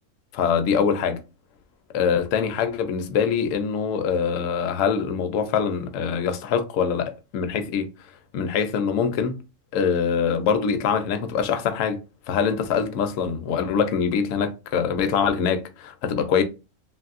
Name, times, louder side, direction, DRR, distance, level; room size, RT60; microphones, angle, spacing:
voice 1, 0.3-1.2 1.9-7.9 8.3-9.4 9.7-12.0 12.3-16.4, left 6 dB, 75° left, 0.9 m, -24 dB
3.0 x 2.6 x 2.4 m
omnidirectional pair, 1.4 m